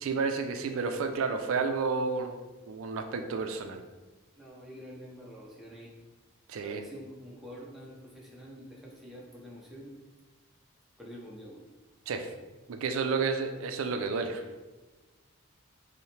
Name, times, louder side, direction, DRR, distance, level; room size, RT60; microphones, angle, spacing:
voice 1, 0.0-2.4 2.7-3.8 6.5-6.8 12.1-12.3 12.7-14.4, right 4 dB, 75° right, 6 dB, 0.4 m, -31 dB
voice 2, 4.4-5.9 6.6-10.0 11.0-11.6, equal, ahead, -4 dB, 0.6 m, -47 dB
5.4 x 2.1 x 3.1 m, 1.2 s
head